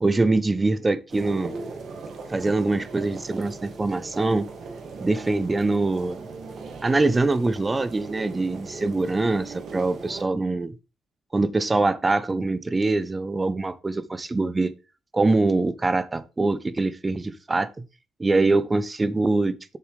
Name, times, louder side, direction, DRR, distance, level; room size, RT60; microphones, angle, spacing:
voice 1, 0.0-1.5 2.3-4.5 5.0-6.2 6.8-10.7 11.3-14.7 15.1-17.9 18.2-19.8, right 3 dB, 20° right, 0.9 m, -23 dB
sound 1, 1.1-10.2, right 4 dB, 65° right, 2.3 m, -39 dB
8.1 x 7.1 x 3.5 m
cardioid pair, 90°, 0 cm